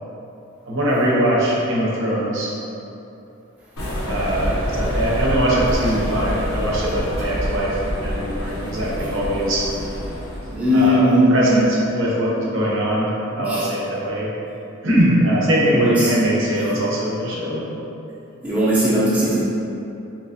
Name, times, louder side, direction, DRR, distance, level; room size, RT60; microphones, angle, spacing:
voice 1, 0.7-2.5 4.1-9.6 10.7-14.3 14.8-17.6, right 1 dB, 65° right, -5 dB, 0.7 m, -21 dB
sound 1, 3.8-10.7, equal, 90° left, 0.6 m, -26 dB
voice 2, 10.5-11.6 13.5-13.6 15.7-15.9 18.4-19.4, equal, 5° right, -10 dB, 0.5 m, -18 dB
3.3 x 2.9 x 2.7 m, 2.8 s
head